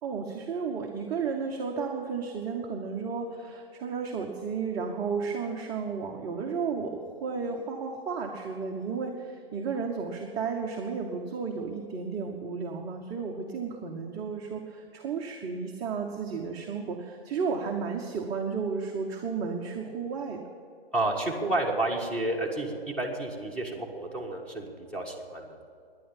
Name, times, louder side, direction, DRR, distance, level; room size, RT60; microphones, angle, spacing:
voice 1, 0.0-20.4, right 5 dB, 10° right, 1 dB, 0.6 m, -33 dB
voice 2, 20.9-25.5, right 2 dB, 5° left, -1 dB, 1.6 m, -30 dB
11.0 x 10.5 x 8.8 m, 2.5 s
figure-of-eight pair, 130°, 30 cm